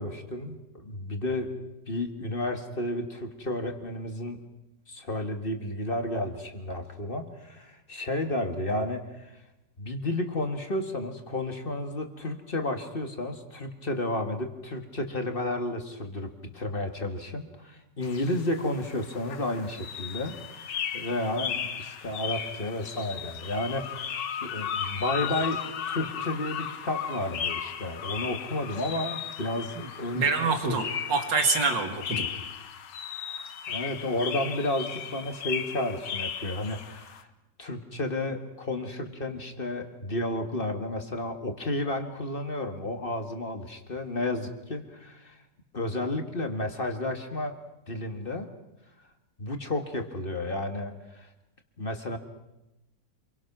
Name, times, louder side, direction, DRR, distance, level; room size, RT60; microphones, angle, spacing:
voice 1, 0.0-1.5 1.9-4.4 4.9-9.3 9.8-25.6 25.9-30.3 30.7-30.8 33.7-37.3 37.6-45.4 45.7-47.6 47.9-48.5 49.4-51.3 51.8-52.2, left 1 dB, 30° left, 5 dB, 1.9 m, -32 dB
sound 1, 18.0-37.2, left 8 dB, 80° left, 1.8 m, -36 dB
voice 2, 29.8-32.3, right 4 dB, 85° right, 6 dB, 2.6 m, -27 dB
27.5 x 23.0 x 6.1 m, 0.96 s
omnidirectional pair, 1.9 m